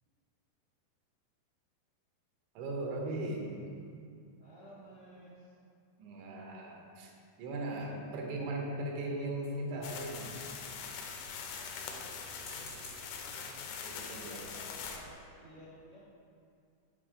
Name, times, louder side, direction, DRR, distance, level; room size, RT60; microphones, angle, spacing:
voice 1, 2.6-3.5 6.0-7.1 7.4-10.3 13.8-14.5, right 1 dB, 85° right, 0 dB, 3.4 m, -38 dB
voice 2, 4.4-5.5 11.8-13.7 14.0-16.2, equal, 65° right, -9 dB, 1.5 m, -55 dB
sound 1, 9.6-10.4 12.3-13.2 13.9-14.1 14.5-14.6 14.8-15.1, left 1 dB, 35° left, 1.9 m, -53 dB
sound 2, 9.8-15.0, left 6 dB, 80° left, 2.6 m, -43 dB
7.8 x 6.0 x 5.0 m, 2.4 s
omnidirectional pair, 5.1 m